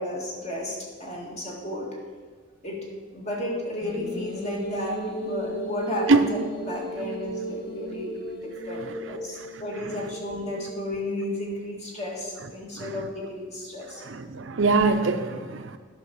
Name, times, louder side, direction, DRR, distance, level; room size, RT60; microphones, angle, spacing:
voice 1, 0.0-1.9 2.6-2.8 3.1-6.4 6.7-14.0, left 1 dB, 35° left, 2.0 m, -33 dB
sound 1, 3.8-11.2, right 1 dB, 55° left, 1.4 m, -36 dB
voice 2, 12.8-13.1 14.0-15.8, right 3 dB, 70° right, 0.6 m, -24 dB
10.0 x 5.7 x 6.2 m
head